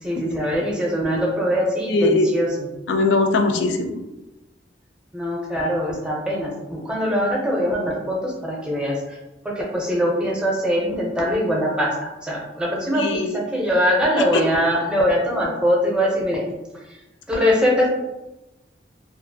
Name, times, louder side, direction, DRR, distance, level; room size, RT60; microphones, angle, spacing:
voice 1, 0.0-2.7 5.1-9.2 9.4-16.5 16.7-16.8 17.3-17.9, equal, 5° right, -2 dB, 0.5 m, -22 dB
voice 2, 1.9-2.3 2.9-4.0 13.0-13.4 14.3-14.4, left 3 dB, 85° left, 5 dB, 0.4 m, -20 dB
2.4 x 2.4 x 2.6 m, 1.0 s
head